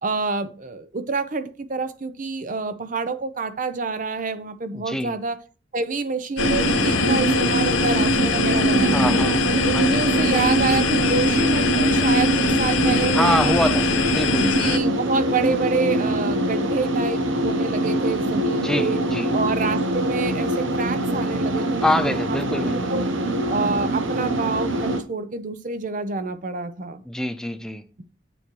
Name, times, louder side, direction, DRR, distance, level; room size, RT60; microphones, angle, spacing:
voice 1, 0.0-5.4 5.7-9.3 9.6-13.7 14.4-19.0 19.3-23.1 23.5-27.0, right 4 dB, 40° right, 0.6 m, -27 dB
voice 2, 4.7-5.2 8.9-9.4 9.7-10.0 13.1-13.9 14.1-14.5 18.6-19.3 21.8-22.9 27.1-27.8, equal, 5° left, 0.5 m, -25 dB
sound 1, 6.4-14.8, left 6 dB, 85° left, 0.7 m, -24 dB
sound 2, 6.4-25.0, right 2 dB, 80° right, 0.8 m, -23 dB
8.1 x 7.0 x 3.0 m
head